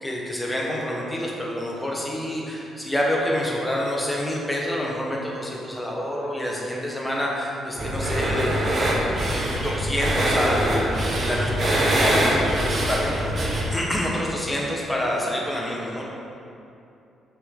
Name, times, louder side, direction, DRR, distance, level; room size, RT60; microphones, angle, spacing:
voice 1, 0.0-8.5 9.3-10.9 11.2-16.0, left 1 dB, 10° left, -3 dB, 1.3 m, -27 dB
sound 1, 7.8-13.7, right 1 dB, 45° right, 1.2 m, -23 dB
6.1 x 6.0 x 3.8 m, 2.6 s
cardioid pair, 90°, 0 cm